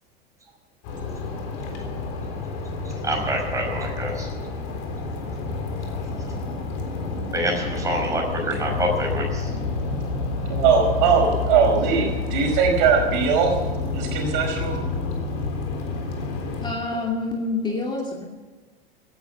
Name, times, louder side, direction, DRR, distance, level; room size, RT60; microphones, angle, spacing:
sound 1, 0.8-16.7, left 4 dB, 50° left, 3.7 m, -29 dB
voice 1, 3.0-4.3 7.3-9.5, right 1 dB, 10° right, 0 dB, 5.5 m, -26 dB
voice 2, 10.5-13.5 13.9-14.8, right 6 dB, 50° right, 2 dB, 5.0 m, -20 dB
voice 3, 16.6-18.3, left 3 dB, 15° left, 0 dB, 2.6 m, -27 dB
17.5 x 11.0 x 6.9 m, 1.4 s
figure-of-eight pair, 85°, 30 cm